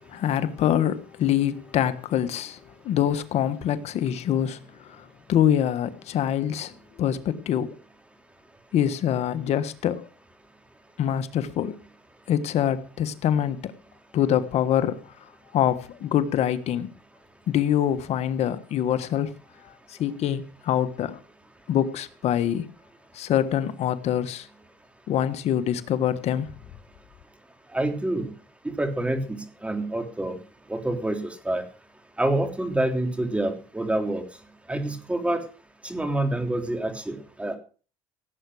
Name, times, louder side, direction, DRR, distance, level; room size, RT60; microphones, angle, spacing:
voice 1, 0.1-7.7 8.7-10.1 11.0-11.7 12.3-13.7 14.1-16.9 17.5-19.4 19.6-21.2 21.7-22.7 23.1-24.5 25.1-26.5, left 10 dB, 60° left, 1.4 m, -25 dB
voice 2, 27.7-28.3 28.6-30.4 30.7-31.6 32.2-34.2 34.7-35.4 35.8-37.6, right 1 dB, 10° right, 3.4 m, -27 dB
17.0 x 8.3 x 6.2 m
supercardioid pair, 100°, 13 cm